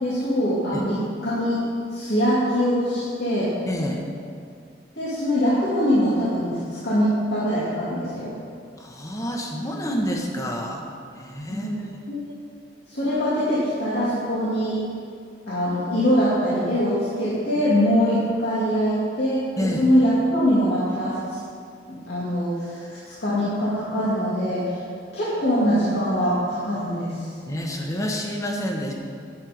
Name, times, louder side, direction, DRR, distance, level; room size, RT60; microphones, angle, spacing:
voice 1, 0.0-1.6 1.9-3.5 4.9-6.6 6.8-8.3 11.5-11.8 12.1-12.3 12.9-14.8 15.5-21.4 21.9-22.8 23.2-24.8 25.1-27.2, equal, 75° left, -10 dB, 2.2 m, -23 dB
voice 2, 3.7-4.0 8.8-10.8 11.2-11.7 19.6-19.9 27.5-28.9, equal, 20° left, 1 dB, 1.1 m, -28 dB
10.5 x 7.7 x 5.1 m, 2.3 s
head